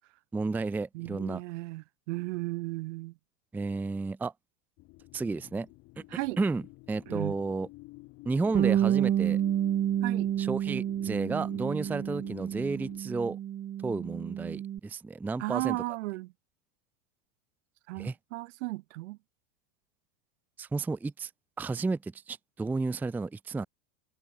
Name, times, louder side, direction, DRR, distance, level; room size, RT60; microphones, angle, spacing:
voice 1, 0.3-1.4 3.5-4.3 5.1-5.7 6.0-6.1 6.4-6.6 6.9-7.7 8.2-9.4 10.4-13.4 13.8-15.8 18.0-18.2 20.6-21.3 21.6-23.7, right 3 dB, 5° right, 0.7 m, -32 dB
voice 2, 0.9-3.1 6.1-6.4 7.1-7.3 10.0-10.3 15.4-16.3 17.9-19.2, right 21 dB, 55° right, 1.7 m, -35 dB
sound 1, 4.8-13.0, left 21 dB, 35° left, 5.8 m, -49 dB
Bass guitar, 8.5-14.8, right 11 dB, 20° right, 2.8 m, -29 dB
supercardioid pair, 170°, 43 cm